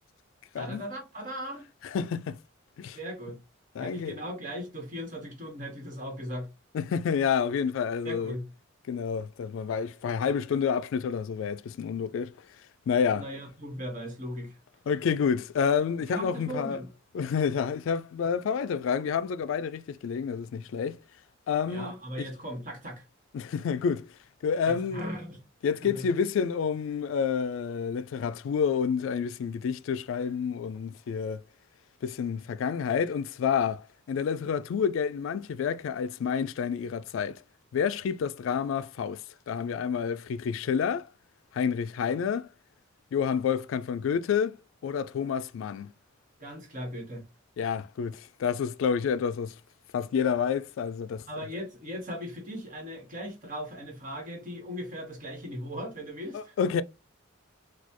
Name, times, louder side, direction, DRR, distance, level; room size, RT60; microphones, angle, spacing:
voice 1, 0.5-1.7 2.9-3.4 3.8-6.5 8.0-8.5 13.1-14.5 16.0-16.9 21.6-23.0 24.6-25.4 25.8-26.1 46.4-47.2 51.3-56.6, equal, 40° right, 1.5 m, -38 dB
voice 2, 1.8-2.4 2.8-3.0 3.8-4.2 6.7-8.3 8.9-12.3 12.9-13.3 14.9-16.8 17.1-21.0 21.5-21.9 22.2-22.3 23.3-24.1 24.4-25.0 25.6-31.4 32.0-37.4 37.7-39.2 39.5-41.1 41.5-42.5 43.1-44.6 44.8-45.9 47.6-49.5 49.9-51.2 56.3-56.8, left 6 dB, 75° left, 0.3 m, -29 dB
4.1 x 2.4 x 2.9 m
head